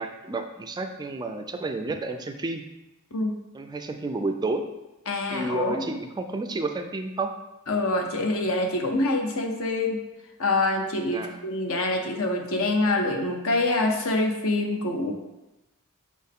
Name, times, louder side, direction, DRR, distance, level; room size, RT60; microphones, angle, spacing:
voice 1, 0.0-2.7 3.5-4.7 5.3-7.3 11.1-11.4, right 3 dB, 20° right, 6 dB, 0.3 m, -31 dB
voice 2, 5.1-5.8 7.7-10.0 10.4-15.1, left 2 dB, 65° left, 3 dB, 0.8 m, -25 dB
6.2 x 4.4 x 3.5 m, 1.0 s
head